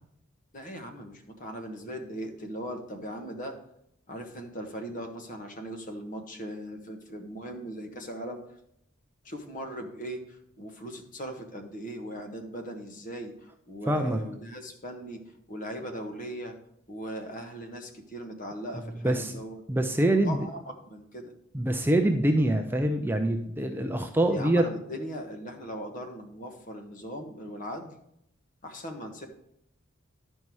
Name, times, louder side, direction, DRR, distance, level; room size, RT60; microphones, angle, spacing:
voice 1, 0.5-3.6 4.1-8.4 9.2-16.5 16.9-19.6 20.1-21.3 24.3-27.9 28.6-29.3, equal, 40° left, 4 dB, 1.3 m, -39 dB
voice 2, 13.9-14.2 19.0-19.3 19.7-20.5 21.5-24.7, right 1 dB, 10° right, 5 dB, 0.5 m, -25 dB
11.0 x 5.5 x 4.7 m, 0.76 s
head